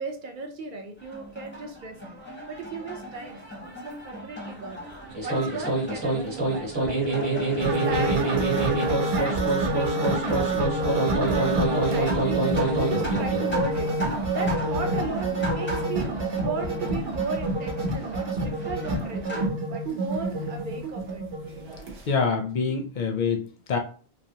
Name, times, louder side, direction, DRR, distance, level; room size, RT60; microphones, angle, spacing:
voice 1, 0.0-2.0 2.5-3.4 3.8-4.8 5.2-8.5 8.8-12.5 12.8-13.9 14.3-21.2, right 3 dB, 60° right, 3 dB, 0.7 m, -36 dB
sound 1, 1.0-19.5, right 1 dB, 15° left, 0.6 m, -39 dB
sound 2, 5.1-13.5, right 2 dB, 25° right, 0.9 m, -26 dB
sound 3, 7.6-22.0, right 2 dB, 75° right, 1.0 m, -28 dB
voice 2, 22.1-23.8, left 5 dB, 60° left, 4 dB, 0.6 m, -26 dB
3.2 x 2.0 x 2.7 m, 0.39 s
omnidirectional pair, 1.1 m